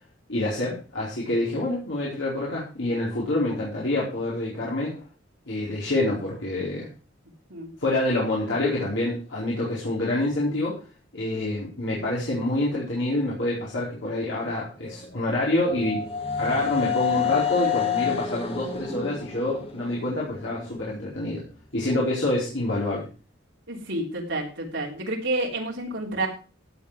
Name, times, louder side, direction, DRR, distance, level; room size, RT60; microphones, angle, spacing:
voice 1, 0.3-5.0 5.5-6.9 7.8-10.8 11.1-16.0 16.4-21.4 21.7-23.1, left 1 dB, 75° left, -6 dB, 4.4 m, -27 dB
sound 1, 14.8-20.7, left 8 dB, 30° left, 2.4 m, -29 dB
voice 2, 23.7-26.3, right 2 dB, 75° right, -1 dB, 3.4 m, -29 dB
15.5 x 7.8 x 4.9 m, 0.35 s
head